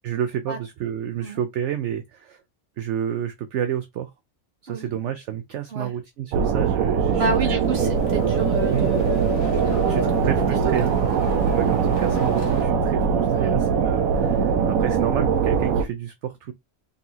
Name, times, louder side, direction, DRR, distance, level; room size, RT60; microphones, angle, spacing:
voice 1, 0.0-2.4 2.8-4.1 4.6-7.5 8.7-8.9 9.5-9.6 9.9-10.9 11.5-16.5, right 10 dB, 65° right, 0.8 m, -30 dB
sound 1, 6.3-15.8, right 6 dB, 80° right, 1.1 m, -21 dB
voice 2, 7.1-9.3 9.7-10.9 13.3-13.6, right 4 dB, 50° right, 1.3 m, -30 dB
sound 2, 7.6-12.6, left 5 dB, 70° left, 1.4 m, -37 dB
4.0 x 3.5 x 2.8 m
omnidirectional pair, 1.5 m